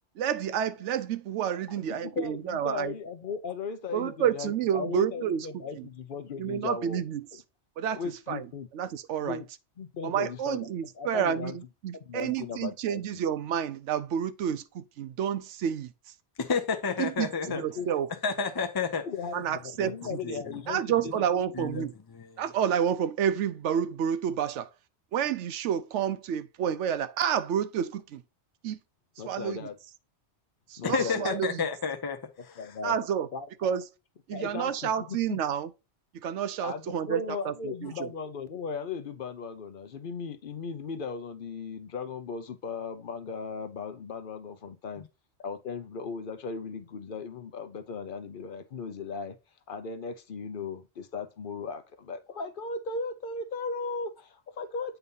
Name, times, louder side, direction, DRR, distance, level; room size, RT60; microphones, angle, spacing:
voice 1, 0.2-2.9 3.9-5.5 6.4-7.3 7.8-8.0 8.3-8.4 8.7-9.4 10.0-15.9 17.0-18.1 19.3-20.2 20.7-21.9 22.4-24.7 25.1-28.2 28.6-28.8 29.3-29.7 30.7-31.6 32.8-33.3 33.6-33.8 34.3-35.7 36.2-37.9, right 9 dB, 90° right, 0.9 m, -29 dB
voice 2, 1.7-7.0 7.9-8.7 9.2-9.5 9.8-10.7 11.0-11.6 11.9-13.0 17.4-17.9 19.0-21.4 29.2-29.7 30.8-31.4 32.6-33.0 33.3-33.7 34.3-35.4 36.6-45.0 45.4-49.4 49.7-55.0, left 5 dB, 55° left, 0.8 m, -37 dB
voice 3, 16.4-17.6 18.2-19.1 19.8-19.9 20.2-20.3 21.5-21.8 22.1-22.3 30.8-32.5, left 5 dB, 35° left, 0.4 m, -30 dB
8.1 x 2.7 x 5.4 m
omnidirectional pair, 1.2 m